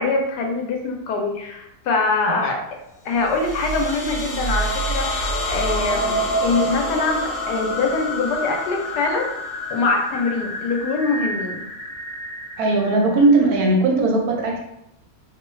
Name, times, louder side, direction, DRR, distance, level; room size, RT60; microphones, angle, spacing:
voice 1, 0.0-2.6 3.0-9.3 9.7-11.6, left 3 dB, 90° left, 2 dB, 1.2 m, -23 dB
sound 1, 3.2-13.8, equal, 70° left, 0.9 m, -27 dB
voice 2, 12.6-14.6, right 2 dB, 70° right, 0 dB, 1.1 m, -18 dB
2.9 x 2.2 x 3.1 m, 0.81 s
omnidirectional pair, 1.7 m